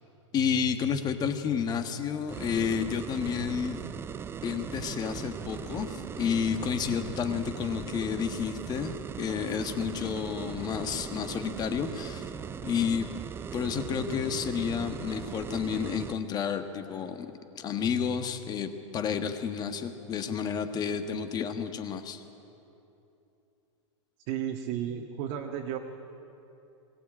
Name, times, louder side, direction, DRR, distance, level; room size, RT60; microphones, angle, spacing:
voice 1, 0.3-3.8 4.4-12.3 12.6-13.1 13.5-22.2, left 7 dB, 25° left, 8 dB, 1.5 m, -31 dB
sound 1, 2.3-16.2, right 7 dB, 15° right, 0.5 m, -39 dB
voice 2, 24.3-25.8, right 10 dB, 45° right, 0 dB, 1.6 m, -33 dB
22.0 x 18.0 x 8.8 m, 2.8 s
hypercardioid pair, 135°, 16 cm